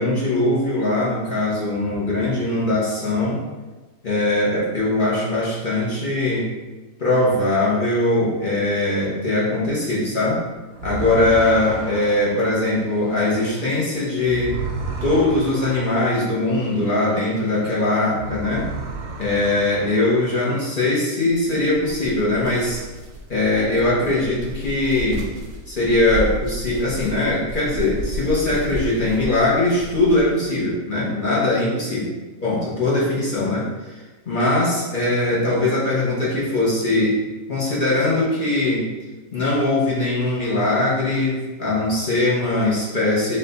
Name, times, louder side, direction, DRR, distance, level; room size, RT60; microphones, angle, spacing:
voice 1, 0.0-3.4 4.0-6.5 7.0-10.4 10.8-14.5 15.0-18.7 19.2-22.8 23.3-25.3 25.7-32.0 32.4-38.9 39.3-43.4, left 2 dB, 40° left, -6 dB, 1.1 m, -21 dB
sound 1, 10.7-17.7 18.0-20.7, right 3 dB, 85° right, 1.1 m, -34 dB
sound 2, 21.4-30.6, equal, 50° right, 0.8 m, -33 dB
4.1 x 2.6 x 3.9 m, 1.2 s
omnidirectional pair, 1.4 m